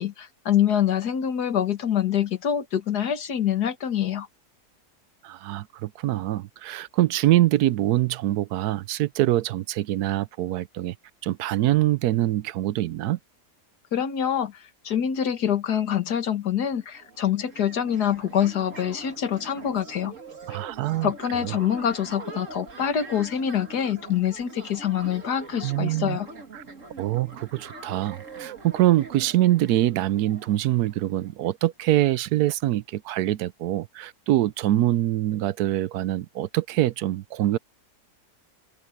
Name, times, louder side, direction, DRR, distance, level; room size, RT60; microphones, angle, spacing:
voice 1, 0.0-4.3 13.9-14.5 14.8-20.1 21.0-26.3, left 9 dB, 80° left, 2.0 m, -25 dB
voice 2, 5.2-10.9 11.2-13.2 20.5-21.1 21.4-21.6 25.6-26.2 26.5-26.6 27.0-37.6, right 14 dB, 80° right, 1.1 m, -24 dB
sound 1, 16.9-31.5, right 3 dB, 50° right, 2.4 m, -43 dB
omnidirectional pair, 1.7 m